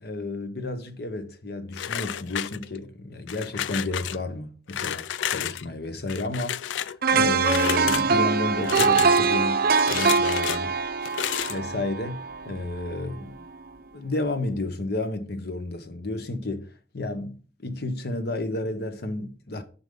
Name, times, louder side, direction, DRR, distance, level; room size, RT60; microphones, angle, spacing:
voice 1, 0.0-10.8 11.4-13.4 13.9-17.4 17.6-19.6, left 2 dB, 60° left, 0.9 m, -32 dB
sound 1, 1.7-2.9 3.3-4.2 4.7-5.6 6.1-7.0 7.4-8.1 8.6-9.3 9.8-10.6 11.0-11.6, left 10 dB, 85° left, 0.3 m, -31 dB
sound 2, 7.0-13.0 13.4-13.6, right 5 dB, 55° right, 0.6 m, -23 dB
7.0 x 5.3 x 3.7 m
head